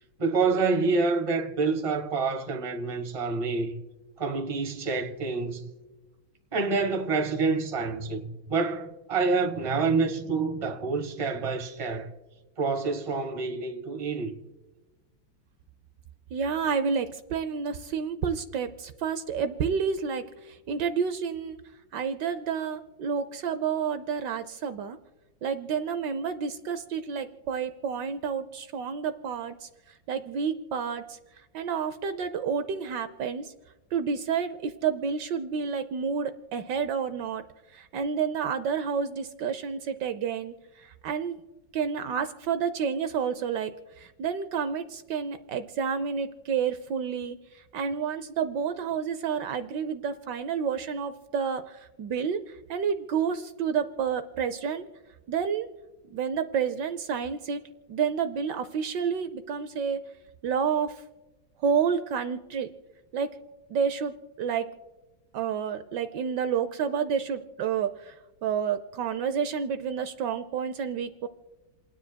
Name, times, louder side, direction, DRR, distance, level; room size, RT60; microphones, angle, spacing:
voice 1, 0.2-3.8 4.2-5.7 6.5-12.1 12.6-14.4, right 4 dB, 20° right, 1.0 m, -27 dB
voice 2, 16.3-21.6 21.9-25.0 25.4-29.7 30.1-31.2 31.5-33.5 33.9-37.4 37.7-40.5 40.8-41.4 41.7-43.7 44.0-47.4 47.7-52.4 52.7-54.8 55.3-55.7 56.1-57.6 57.9-60.0 60.4-60.9 61.6-62.7 63.1-63.3 63.7-64.7 65.3-68.1 68.4-71.3, right 6 dB, 70° right, 1.2 m, -29 dB
29.0 x 10.0 x 2.2 m
omnidirectional pair, 2.1 m